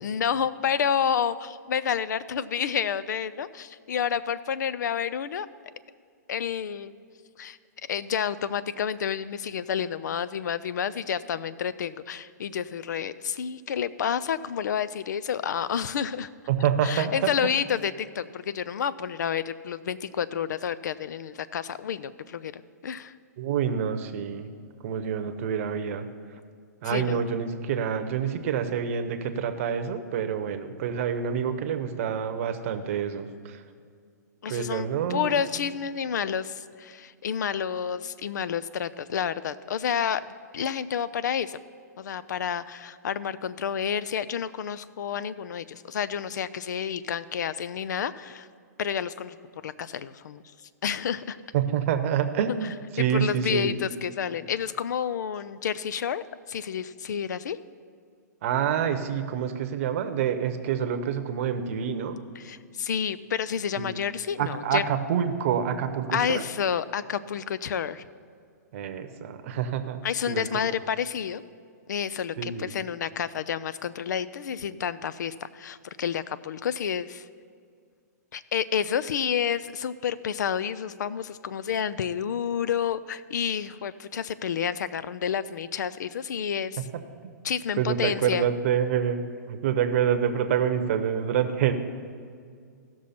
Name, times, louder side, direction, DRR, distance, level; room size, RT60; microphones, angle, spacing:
voice 1, 0.0-5.5 6.3-6.9 7.4-7.6 7.9-16.3 16.8-23.1 26.8-27.2 34.4-40.2 40.5-41.6 42.0-48.5 48.8-49.4 49.6-50.4 50.8-51.4 53.0-57.6 62.4-64.8 66.1-68.0 70.0-71.4 71.9-77.3 78.3-86.8 87.4-88.5, left 8 dB, 70° left, 16 dB, 0.5 m, -29 dB
voice 2, 16.5-17.3 23.4-24.5 24.8-26.1 26.8-33.6 34.5-35.4 51.5-53.7 58.4-62.2 63.8-63.9 64.4-66.4 68.7-70.5 72.4-72.7 87.8-89.2 89.5-91.7, right 8 dB, 45° right, 8 dB, 0.9 m, -27 dB
15.5 x 6.2 x 4.3 m, 2.2 s
hypercardioid pair, 140°, 10 cm